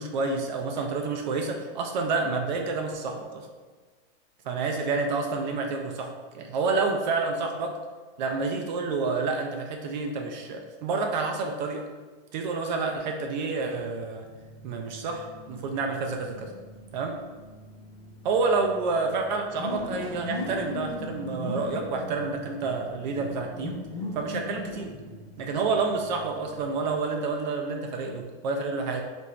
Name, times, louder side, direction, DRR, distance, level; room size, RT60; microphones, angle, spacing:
voice 1, 0.0-3.5 4.4-7.8 8.2-11.8 12.3-14.3 14.6-16.5 16.9-17.2 18.2-23.8 24.1-24.9 25.4-29.0, right 4 dB, 50° right, 3 dB, 0.4 m, -29 dB
sound 1, 13.8-27.0, left 2 dB, 30° left, 1.2 m, -40 dB
2.9 x 2.5 x 4.2 m, 1.4 s
supercardioid pair, 170°, 31 cm